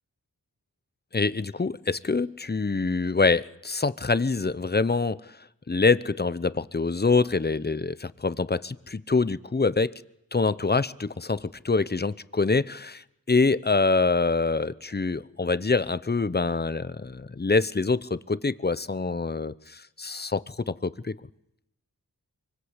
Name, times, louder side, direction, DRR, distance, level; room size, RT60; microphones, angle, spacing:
voice 1, 1.1-5.3 5.7-9.9 10.3-21.1, left 4 dB, 25° left, 16 dB, 0.8 m, -25 dB
24.5 x 22.5 x 8.1 m, 0.87 s
wide cardioid pair, 60°, 37 cm